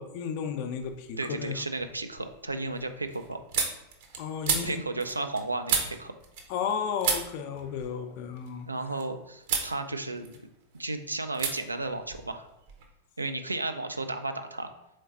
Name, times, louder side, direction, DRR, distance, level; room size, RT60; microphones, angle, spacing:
voice 1, 0.0-1.6 4.2-4.8 6.5-8.7, left 7 dB, 45° left, 6 dB, 0.5 m, -33 dB
sound 1, 0.8-1.3 1.7-6.7 7.0-9.0 9.4-9.7 10.1-10.8 11.3-11.5 11.8-12.9, right 5 dB, 55° right, 0.8 m, -33 dB
voice 2, 1.2-3.4 4.6-6.1 8.7-10.3 10.8-12.5 13.2-14.7, right 2 dB, 80° right, 8 dB, 0.4 m, -33 dB
3.9 x 3.2 x 4.2 m, 0.87 s
figure-of-eight pair, 90°, 0 cm